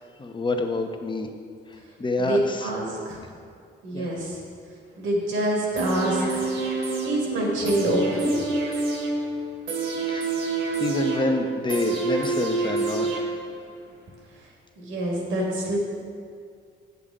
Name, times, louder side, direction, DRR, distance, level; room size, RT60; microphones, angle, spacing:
voice 1, 0.2-1.3 2.0-2.7 3.9-4.1 10.1-10.3 10.8-13.2, left 2 dB, 25° left, 5 dB, 0.7 m, -27 dB
voice 2, 2.2-3.2 3.8-4.4 5.0-6.4 7.0-8.4 14.8-15.8, right 1 dB, 85° right, -2 dB, 2.0 m, -26 dB
sound 1, 5.8-13.7 14.1-14.2, right 3 dB, 70° right, 1.4 m, -28 dB
8.3 x 6.8 x 3.7 m, 2.2 s
cardioid pair, 90°, 20 cm